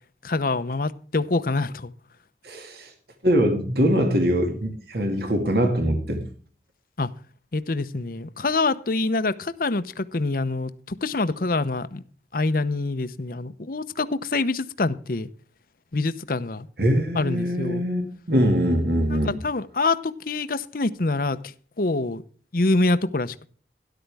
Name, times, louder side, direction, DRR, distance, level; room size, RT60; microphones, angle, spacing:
voice 1, 0.2-1.9 7.0-7.1 7.5-12.0 12.3-15.3 15.9-16.7 17.1-17.8 19.1-22.2 22.5-23.5, left 3 dB, 55° left, 0.8 m, -25 dB
voice 2, 2.4-2.9 3.2-6.2 16.8-19.4, equal, 60° right, 2.3 m, -22 dB
13.0 x 11.5 x 3.5 m
head